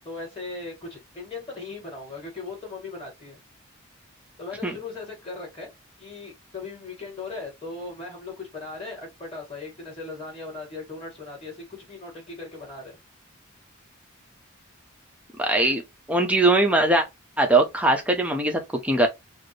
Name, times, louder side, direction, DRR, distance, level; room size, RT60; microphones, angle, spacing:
voice 1, 0.0-3.4 4.4-5.7 6.0-13.0, left 3 dB, 30° left, 2.1 m, -38 dB
voice 2, 15.4-15.8 16.1-17.0 17.4-19.1, right 2 dB, 5° right, 0.7 m, -21 dB
4.2 x 2.0 x 3.2 m
head